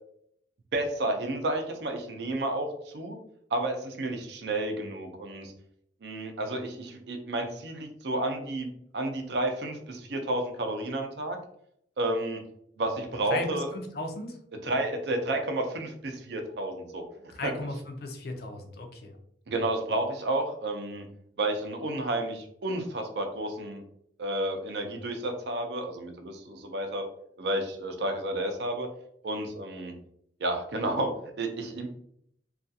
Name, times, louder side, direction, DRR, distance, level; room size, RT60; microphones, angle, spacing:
voice 1, 0.7-3.2 3.5-5.5 6.0-8.7 8.9-11.4 12.0-12.4 12.8-13.7 14.6-17.0 17.4-17.5 19.5-21.1 21.4-23.8 24.2-27.0 27.4-28.9 29.2-29.9 30.4-31.9, right 1 dB, 60° right, 4 dB, 0.5 m, -31 dB
voice 2, 13.3-14.4 17.3-19.2, left 1 dB, 55° left, 4 dB, 0.4 m, -36 dB
2.4 x 2.3 x 2.6 m, 0.70 s
head